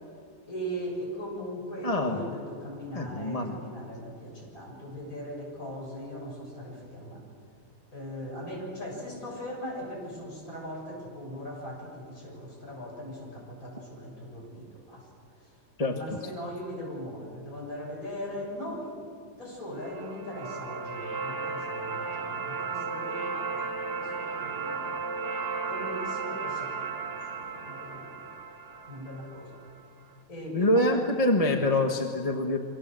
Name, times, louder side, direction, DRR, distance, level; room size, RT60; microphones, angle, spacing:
voice 1, 0.5-7.2 7.9-15.1 15.9-19.1 19.3-24.9 25.6-28.3 28.8-29.5 30.3-31.1, equal, 60° left, -1 dB, 8.0 m, -39 dB
voice 2, 1.8-2.2 2.9-3.6 15.8-16.2 30.5-32.6, left 1 dB, 20° left, 3 dB, 1.6 m, -25 dB
sound 1, 19.8-29.8, right 5 dB, 70° right, 2.9 m, -35 dB
27.5 x 25.5 x 7.7 m, 2.2 s
omnidirectional pair, 1.7 m